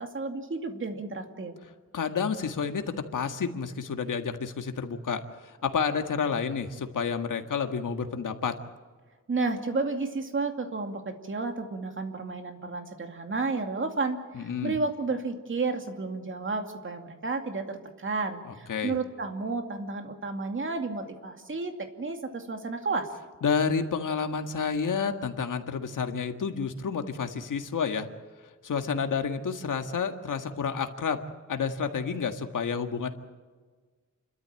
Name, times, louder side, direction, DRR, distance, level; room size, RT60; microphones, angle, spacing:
voice 1, 0.0-1.5 9.3-23.1, right 3 dB, 40° right, 5 dB, 2.4 m, -32 dB
voice 2, 1.9-2.8 3.1-8.5 14.3-14.8 18.7-18.9 23.4-28.1 28.6-31.2 31.5-33.1, left 6 dB, 80° left, 6 dB, 1.8 m, -30 dB
29.0 x 13.5 x 9.0 m, 1.5 s
wide cardioid pair, 160°, 31 cm